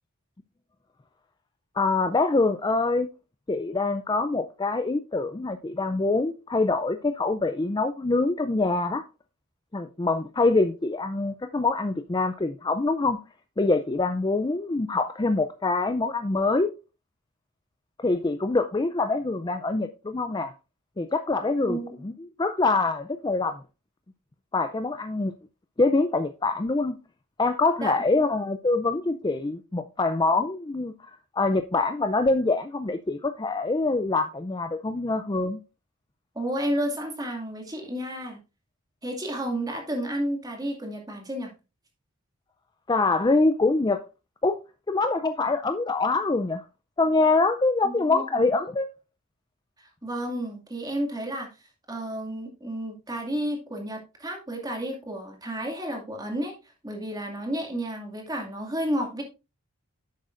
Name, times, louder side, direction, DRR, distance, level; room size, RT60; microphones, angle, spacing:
voice 1, 1.8-3.1 3.5-9.0 9.7-13.2 13.6-16.7 18.0-20.5 21.0-21.8 22.0-22.1 22.4-23.6 24.5-25.3 25.8-27.0 27.4-30.9 31.4-35.6 42.9-44.0 44.4-44.6 44.9-46.6 47.0-48.9, left 3 dB, 20° left, 0.4 m, -24 dB
voice 2, 21.7-22.1 27.8-27.9 36.3-38.4 39.0-41.5 47.8-48.4 49.8-51.5 51.9-56.5 56.8-59.2, right 1 dB, 15° right, 2.2 m, -31 dB
10.5 x 7.9 x 2.5 m
head